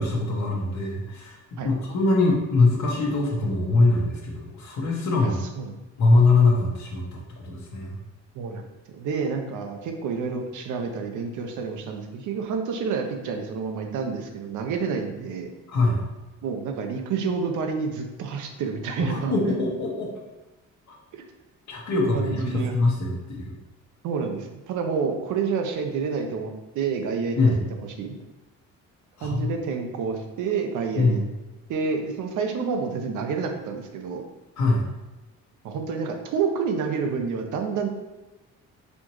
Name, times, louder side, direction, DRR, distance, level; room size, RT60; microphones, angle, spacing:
voice 1, 0.0-5.4 6.0-8.0 15.7-16.0 19.0-20.1 21.7-23.5 27.4-27.6 29.2-29.6 31.0-31.2 34.6-34.8, left 3 dB, 65° left, -1 dB, 1.0 m, -23 dB
voice 2, 5.2-5.7 8.4-8.6 9.0-15.5 16.4-19.3 22.1-22.8 24.0-27.4 28.0-28.1 29.2-31.2 31.7-34.2 35.6-37.9, right 5 dB, 80° right, 4 dB, 0.6 m, -29 dB
4.3 x 2.8 x 3.0 m, 1.1 s
cardioid pair, 90°, 30 cm